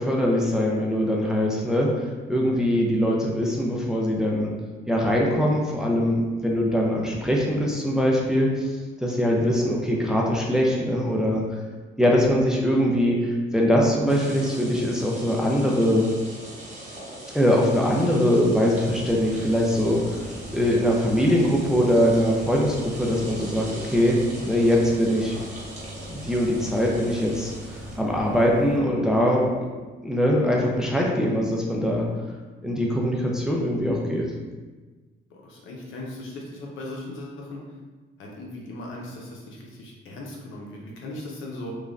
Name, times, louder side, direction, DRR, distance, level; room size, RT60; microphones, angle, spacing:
voice 1, 0.0-4.5 4.9-8.7 9.0-11.4 12.0-16.1 17.3-20.0 20.5-24.2 24.4-25.4 26.1-29.7 30.0-32.1 32.6-34.2, equal, 5° right, -2 dB, 0.5 m, -22 dB
sound 1, 14.1-28.0, right 1 dB, 35° right, 0.9 m, -41 dB
sound 2, 18.7-28.8, equal, 70° right, 0.6 m, -40 dB
voice 2, 35.3-37.6 38.2-41.7, left 1 dB, 80° left, -2 dB, 0.7 m, -38 dB
3.0 x 2.3 x 2.5 m, 1.3 s
cardioid pair, 90°, 20 cm